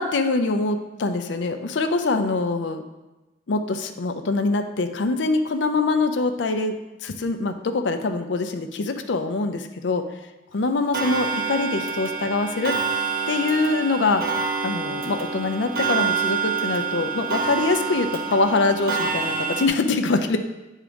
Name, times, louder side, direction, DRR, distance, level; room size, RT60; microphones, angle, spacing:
voice 1, 0.0-2.8 3.5-6.7 7.0-10.0 10.5-12.8 13.3-14.2 14.6-20.4, left 3 dB, 85° left, 7 dB, 0.5 m, -24 dB
Clock, 10.9-19.7, right 6 dB, 55° right, 0.9 m, -27 dB
8.9 x 3.7 x 5.1 m, 1.1 s
head